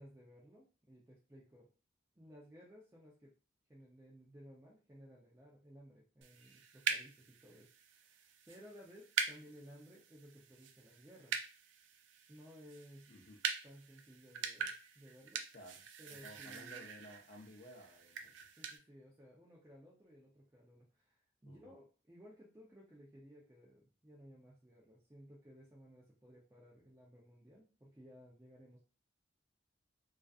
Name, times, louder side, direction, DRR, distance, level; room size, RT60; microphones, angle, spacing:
voice 1, 0.0-1.7 2.2-3.3 3.7-11.4 12.3-13.1 13.6-15.4 16.0-16.9 18.6-28.8, equal, 15° right, -5 dB, 0.5 m, -58 dB
sound 1, 6.2-18.8, right 6 dB, 85° right, 0.4 m, -44 dB
voice 2, 13.1-13.4 15.5-15.8 16.2-18.6 21.4-21.7, equal, 45° left, -1 dB, 0.5 m, -55 dB
2.4 x 2.4 x 2.3 m, 0.35 s
head